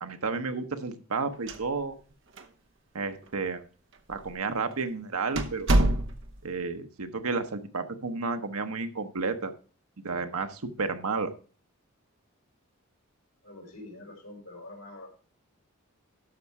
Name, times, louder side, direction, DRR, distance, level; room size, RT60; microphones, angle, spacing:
voice 1, 0.0-2.0 2.9-3.6 4.1-5.7 6.4-9.5 10.0-11.3, right 4 dB, 85° right, 7 dB, 1.0 m, -31 dB
sound 1, 1.3-2.1 2.4-2.5 3.2-3.3 4.1-4.3 4.7-4.8 5.4-6.5, right 1 dB, 55° right, 0.9 m, -26 dB
voice 2, 13.4-15.1, left 2 dB, 85° left, -2 dB, 4.7 m, -45 dB
12.5 x 5.4 x 4.7 m, 0.39 s
head